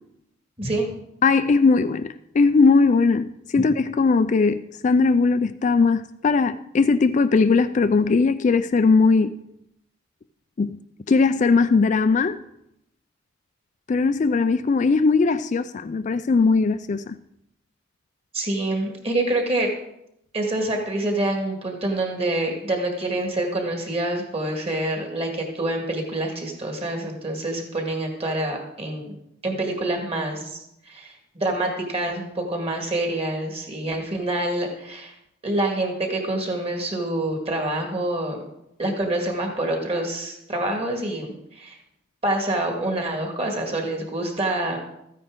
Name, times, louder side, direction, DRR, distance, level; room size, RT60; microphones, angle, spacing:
voice 1, 1.2-2.1 2.3-9.3 10.6-10.8 11.1-12.4 13.9-17.2, left 4 dB, 35° left, 0.3 m, -19 dB
voice 2, 18.3-19.7 20.3-29.1 29.4-35.1 35.4-38.4 38.8-41.3 41.6-41.8 42.2-44.8, right 1 dB, 30° right, 1.9 m, -26 dB
14.0 x 9.4 x 3.7 m
head